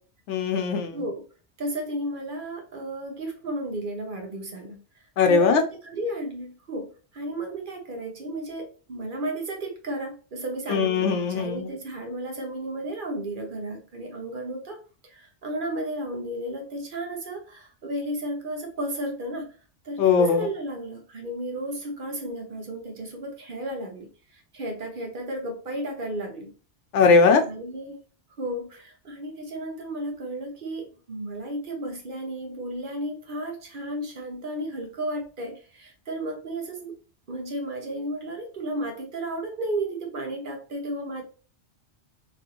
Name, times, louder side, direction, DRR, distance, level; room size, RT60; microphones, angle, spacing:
voice 1, 0.3-1.0 5.2-5.6 10.7-11.7 20.0-20.5 26.9-27.4, left 5 dB, 85° left, 6 dB, 0.9 m, -20 dB
voice 2, 0.9-1.2 1.6-4.8 5.3-6.9 7.1-19.5 19.8-26.5 27.4-28.0 28.4-37.0 37.3-41.2, right 1 dB, 50° right, 3 dB, 0.9 m, -33 dB
3.0 x 2.5 x 2.8 m, 0.35 s
omnidirectional pair, 1.2 m